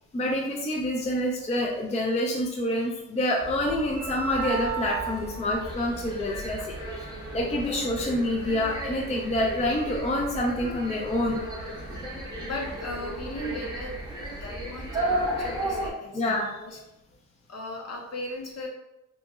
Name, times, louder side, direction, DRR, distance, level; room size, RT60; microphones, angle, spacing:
voice 1, 0.1-6.7 7.3-11.4 16.1-16.6, left 1 dB, 20° left, -1 dB, 0.4 m, -27 dB
sound 1, 3.4-15.9, right 2 dB, 10° right, 0.8 m, -34 dB
voice 2, 6.5-7.0 12.4-16.8 17.5-18.7, left 1 dB, 50° left, 0 dB, 0.7 m, -38 dB
2.9 x 2.6 x 2.3 m, 0.91 s
cardioid pair, 85°, 33 cm